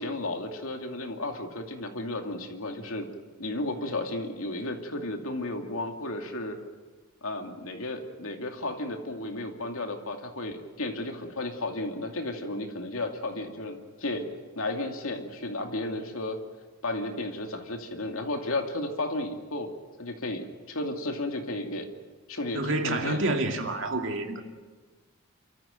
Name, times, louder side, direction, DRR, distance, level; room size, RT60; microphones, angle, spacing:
voice 1, 0.0-3.1 3.4-6.6 7.2-14.3 14.6-16.4 16.8-19.7 20.0-21.9 22.3-23.4, left 2 dB, 70° left, 4 dB, 2.6 m, -33 dB
voice 2, 22.5-24.4, right 2 dB, 55° right, 4 dB, 2.4 m, -28 dB
28.0 x 14.0 x 9.1 m, 1.3 s
head